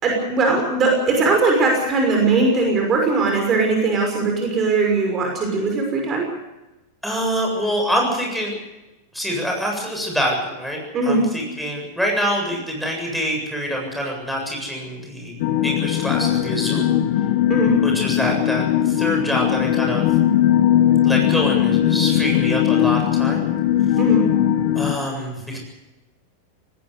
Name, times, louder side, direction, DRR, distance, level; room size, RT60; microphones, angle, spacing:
voice 1, 0.0-6.3 10.9-11.2 17.5-17.7 24.0-24.2, right 3 dB, 25° right, 1 dB, 6.0 m, -19 dB
voice 2, 7.0-8.5 9.1-15.4 15.6-16.9 17.8-20.1 21.0-23.5 24.7-25.6, equal, ahead, 0 dB, 7.8 m, -25 dB
sound 1, 15.4-24.9, left 11 dB, 50° left, 1.6 m, -19 dB
19.0 x 18.5 x 8.4 m, 0.98 s
figure-of-eight pair, 90°, 0 cm